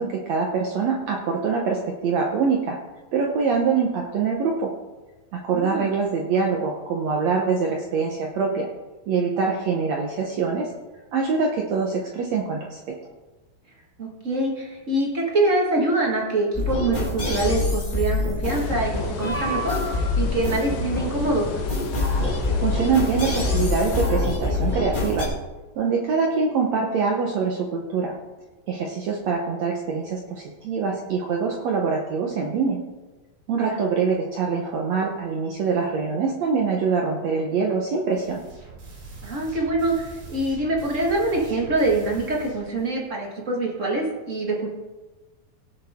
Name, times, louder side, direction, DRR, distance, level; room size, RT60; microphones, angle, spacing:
voice 1, 0.0-2.8 3.1-4.7 5.3-8.7 9.1-10.7 11.1-13.0 22.6-25.3 25.8-28.1 28.7-32.8 33.5-38.4, right 5 dB, 70° right, 0 dB, 1.7 m, -24 dB
voice 2, 5.5-5.9 14.0-19.9 20.2-21.5 33.5-33.8 39.2-44.7, right 2 dB, 45° right, -1 dB, 0.9 m, -25 dB
sound 1, 16.5-25.3, left 2 dB, 25° left, 1.1 m, -26 dB
sound 2, 18.5-24.1, left 5 dB, 65° left, 2.2 m, -32 dB
sound 3, 38.0-42.9, right 3 dB, 85° right, 5.3 m, -42 dB
18.0 x 7.9 x 3.6 m, 1.2 s
omnidirectional pair, 4.2 m